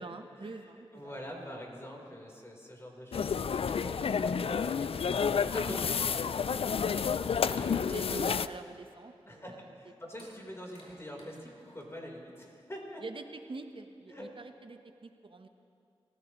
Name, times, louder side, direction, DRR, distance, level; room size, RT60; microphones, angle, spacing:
voice 1, 0.0-1.2 7.9-9.6 10.4-10.5 13.0-15.5, right 3 dB, 55° right, 6 dB, 1.0 m, -45 dB
voice 2, 0.9-8.0 9.3-13.0 14.1-14.3, equal, 25° left, -1 dB, 3.8 m, -45 dB
sound 1, 3.1-8.5, left 6 dB, 65° left, 0.4 m, -30 dB
sound 2, 7.2-8.6 8.9-9.0 10.1-11.9, left 1 dB, 85° left, 3.7 m, -54 dB
24.0 x 15.0 x 3.1 m, 2.4 s
cardioid pair, 50°, 10 cm